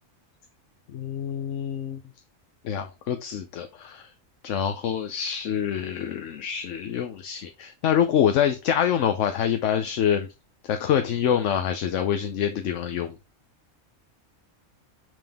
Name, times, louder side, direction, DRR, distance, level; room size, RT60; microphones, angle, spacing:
voice 1, 0.9-2.0 2.6-4.1 4.4-10.3 10.6-13.1, left 9 dB, 70° left, 7 dB, 1.0 m, -26 dB
7.6 x 3.7 x 3.5 m, 0.27 s
omnidirectional pair, 1.4 m